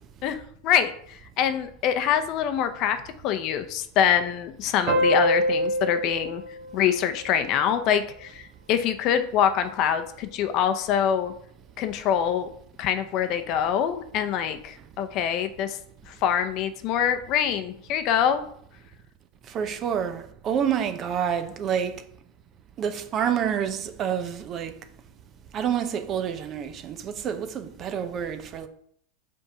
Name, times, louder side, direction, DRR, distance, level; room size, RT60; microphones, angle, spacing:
voice 1, 0.6-3.0 3.2-6.4 6.7-11.3 11.8-12.5 12.8-15.8 16.1-18.5, left 9 dB, 50° left, 0.7 m, -25 dB
sound 1, 4.9-8.0, equal, 60° right, 1.3 m, -26 dB
voice 2, 19.5-22.0 22.8-24.7 25.5-28.7, right 8 dB, 40° right, 0.7 m, -28 dB
5.4 x 3.6 x 5.7 m
hypercardioid pair, 110°, 0 cm